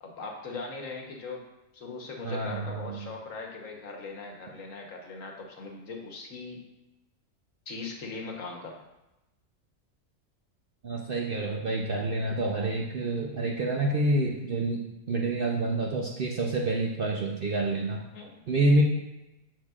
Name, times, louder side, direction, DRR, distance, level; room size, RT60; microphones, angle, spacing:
voice 1, 0.0-1.4 1.7-6.6 7.7-8.8 18.1-18.4, left 3 dB, 75° left, 1 dB, 1.4 m, -40 dB
voice 2, 2.2-3.1 10.8-18.0 18.5-18.8, right 2 dB, 50° right, -1 dB, 0.8 m, -28 dB
7.7 x 6.4 x 2.4 m, 0.95 s
omnidirectional pair, 1.4 m